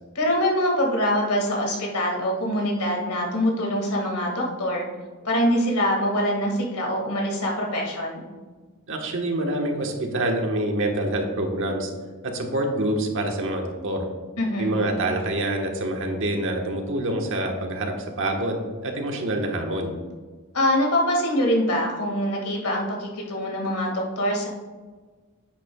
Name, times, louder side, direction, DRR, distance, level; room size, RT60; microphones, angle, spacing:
voice 1, 0.2-4.9 5.2-8.2 14.4-14.8 20.5-24.5, equal, 85° left, 0 dB, 2.0 m, -24 dB
voice 2, 8.9-11.9 12.2-14.0 14.6-19.9, right 1 dB, 60° right, 2 dB, 1.3 m, -26 dB
10.0 x 8.4 x 2.3 m, 1.4 s
head